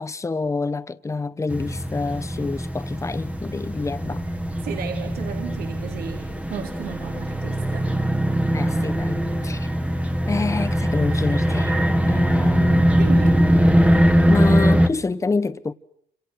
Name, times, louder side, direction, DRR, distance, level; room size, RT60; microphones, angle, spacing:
voice 1, 0.0-4.3 8.5-9.7 10.3-11.8 12.1-12.9 14.3-15.7, left 3 dB, 15° left, 1.1 m, -27 dB
sound 1, 1.5-14.9, equal, 5° right, 1.9 m, -21 dB
voice 2, 4.6-7.9 13.0-13.5, right 7 dB, 65° right, 3.8 m, -35 dB
29.5 x 27.0 x 6.4 m
cardioid pair, 110°, 17 cm